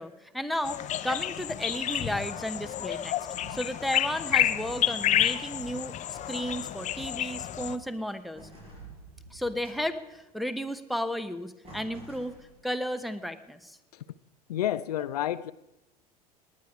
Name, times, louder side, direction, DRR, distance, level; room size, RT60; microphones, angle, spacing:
voice 1, 0.0-3.1 3.5-8.5 9.3-12.4 12.6-13.8, equal, ahead, 8 dB, 1.0 m, -33 dB
sound 1, 0.6-7.8, left 11 dB, 35° left, 0.7 m, -30 dB
sound 2, 3.4-3.8 4.3-5.0 5.6-8.0 8.7-9.5, right 7 dB, 75° right, 2.0 m, -50 dB
sound 3, 4.8-5.8 6.3-6.9 7.3-7.8 8.1-10.3 11.2-11.3 11.6-12.8, right 1 dB, 30° right, 6.5 m, -53 dB
voice 2, 14.5-15.5, left 12 dB, 75° left, 17 dB, 0.4 m, -30 dB
19.0 x 9.5 x 4.8 m, 0.96 s
figure-of-eight pair, 70°, 20 cm